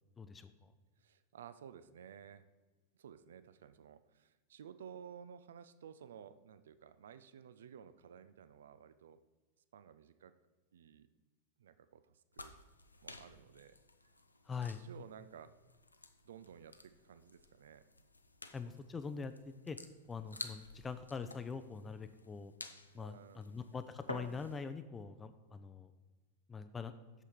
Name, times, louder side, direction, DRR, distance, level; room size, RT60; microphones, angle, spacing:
voice 1, 0.2-0.7 14.5-14.8 18.5-19.3 19.7-19.8 20.1-22.5 22.9-25.9 26.5-26.9, left 5 dB, 15° left, 10 dB, 0.5 m, -43 dB
voice 2, 1.0-2.5 3.0-9.2 9.7-10.3 10.7-11.1 11.6-12.5 13.0-13.8 14.8-15.5 16.2-17.8 22.9-23.6, right 8 dB, 60° right, 13 dB, 0.4 m, -54 dB
sound 1, 12.3-24.7, left 2 dB, 80° left, 0.6 m, -52 dB
8.1 x 7.0 x 4.5 m, 1.3 s
figure-of-eight pair, 90°, 0 cm